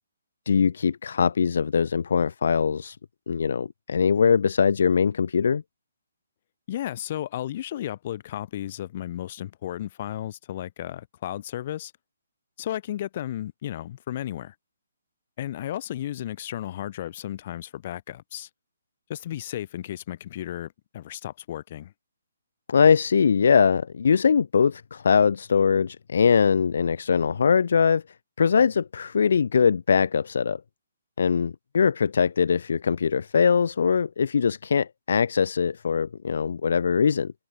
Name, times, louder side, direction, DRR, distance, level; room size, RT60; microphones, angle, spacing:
voice 1, 0.5-3.0 3.3-5.6 22.7-28.0 28.4-30.6 31.2-37.3, left 6 dB, 60° left, 0.9 m, -22 dB
voice 2, 6.7-11.9 12.6-14.6 15.4-18.5 19.1-21.9, left 12 dB, 40° left, 3.4 m, -34 dB
figure-of-eight pair, 135°, 0 cm